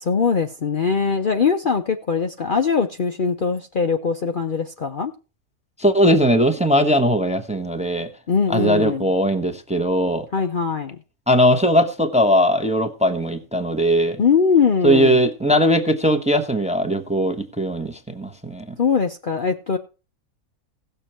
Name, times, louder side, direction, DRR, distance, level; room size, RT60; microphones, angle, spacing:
voice 1, 0.0-5.1 8.3-9.1 10.3-11.0 14.2-15.2 18.8-19.8, left 6 dB, 45° left, 0.8 m, -21 dB
voice 2, 5.8-8.1 8.5-10.3 11.3-14.2 14.8-18.7, equal, 5° right, 0.9 m, -19 dB
17.0 x 6.8 x 4.4 m
omnidirectional pair, 1.5 m